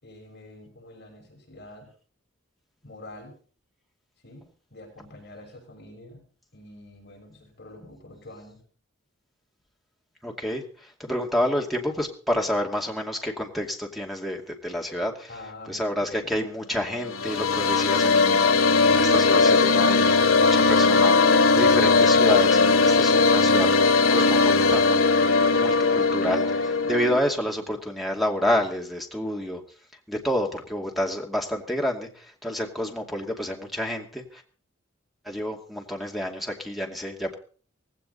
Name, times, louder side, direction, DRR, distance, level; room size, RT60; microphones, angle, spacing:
voice 1, 0.0-1.9 2.8-3.3 4.2-6.2 6.5-8.6 15.3-16.3 23.3-23.6, left 1 dB, 50° left, 1 dB, 6.1 m, -46 dB
voice 2, 10.2-15.3 15.7-25.0 25.5-29.6 30.1-34.4 35.2-37.3, equal, ahead, 2 dB, 2.4 m, -29 dB
sound 1, 16.9-27.2, left 4 dB, 90° left, 1.3 m, -19 dB
18.0 x 16.5 x 4.1 m, 0.42 s
head